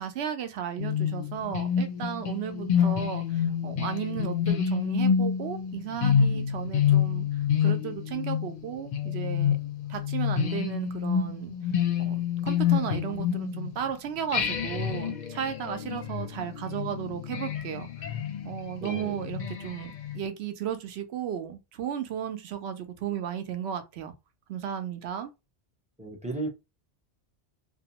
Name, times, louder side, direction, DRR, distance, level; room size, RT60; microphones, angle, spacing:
voice 1, 0.0-9.6 9.9-11.5 12.0-18.2 18.4-24.1 24.5-25.3, right 9 dB, 75° right, 0.8 m, -34 dB
sound 1, 0.8-13.9 14.3-20.2, left 8 dB, 55° left, 0.5 m, -28 dB
voice 2, 18.8-19.3 26.0-26.5, right 2 dB, 10° right, 0.5 m, -34 dB
2.6 x 2.0 x 2.8 m
omnidirectional pair, 1.1 m